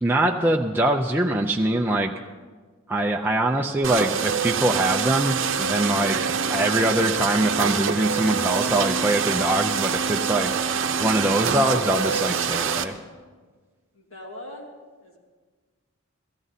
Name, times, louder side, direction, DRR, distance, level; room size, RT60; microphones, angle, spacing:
voice 1, 0.0-2.1 2.9-10.5 11.0-13.0, right 1 dB, 10° right, 0 dB, 0.4 m, -23 dB
sound 1, 3.8-12.8, right 6 dB, 65° right, 0.7 m, -25 dB
voice 2, 13.9-14.7 15.0-15.2, left 1 dB, 90° left, -2 dB, 2.3 m, -40 dB
17.0 x 14.0 x 4.1 m, 1.5 s
head